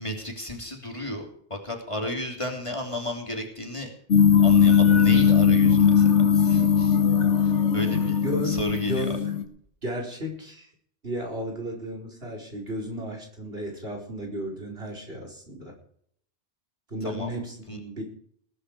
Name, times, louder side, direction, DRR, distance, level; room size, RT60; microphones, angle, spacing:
voice 1, 0.0-3.9 4.4-7.0 7.4-8.2 8.4-9.1 17.0-17.3 17.7-17.8, left 1 dB, 25° left, 1 dB, 3.3 m, -33 dB
sound 1, 4.1-9.4, left 7 dB, 85° left, 2.0 m, -19 dB
voice 2, 8.2-9.4 9.8-10.7 11.0-15.7 16.9-18.0, equal, 60° right, 0 dB, 4.9 m, -34 dB
20.0 x 10.5 x 4.9 m, 0.62 s
omnidirectional pair, 1.2 m